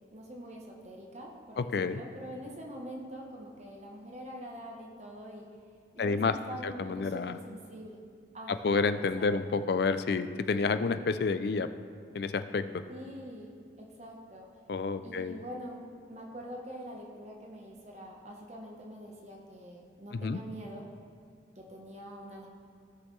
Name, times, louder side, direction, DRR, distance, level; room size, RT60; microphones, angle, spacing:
voice 1, 0.1-5.5 5.9-8.0 8.3-8.8 9.2-9.3 12.9-13.5 13.8-14.5 15.0-20.9 21.6-22.5, equal, 35° right, -1 dB, 0.9 m, -44 dB
voice 2, 1.6-2.0 6.0-6.3 6.6-7.4 8.5-11.7 12.1-12.6 14.7-15.4 20.1-20.4, left 4 dB, 55° left, 11 dB, 0.4 m, -29 dB
15.5 x 6.4 x 3.2 m, 2.2 s
head